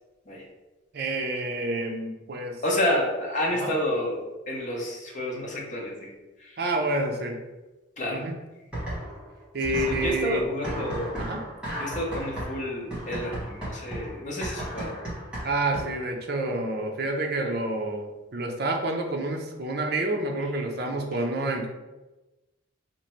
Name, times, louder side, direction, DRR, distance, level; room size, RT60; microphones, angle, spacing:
voice 1, 0.9-2.6 3.6-3.7 6.6-7.4 8.1-8.3 9.5-10.4 10.8-10.9 11.2-11.4 15.4-21.7, right 2 dB, 55° right, 2 dB, 0.5 m, -28 dB
voice 2, 2.6-6.1 6.4-6.6 8.0-8.2 9.7-11.2 11.8-15.0, left 1 dB, 40° left, -2 dB, 0.8 m, -30 dB
sound 1, 8.7-9.3 9.6-16.1, right 1 dB, 5° right, 1.1 m, -35 dB
3.0 x 2.5 x 4.3 m, 1.1 s
head